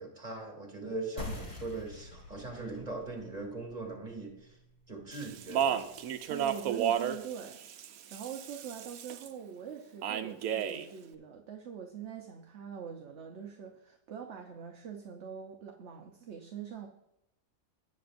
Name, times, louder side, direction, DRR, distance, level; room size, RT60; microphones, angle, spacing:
voice 1, 0.0-4.6 4.9-5.9, right 3 dB, 30° right, 0 dB, 2.5 m, -40 dB
sound 1, 1.2-6.3, left 2 dB, 35° left, 1.8 m, -47 dB
Speech, 5.1-9.3 10.0-10.9, right 9 dB, 80° right, 1.1 m, -33 dB
voice 2, 6.3-7.6 8.1-16.9, right 7 dB, 60° right, 3 dB, 1.0 m, -43 dB
17.0 x 7.3 x 2.6 m, 0.84 s
omnidirectional pair, 1.4 m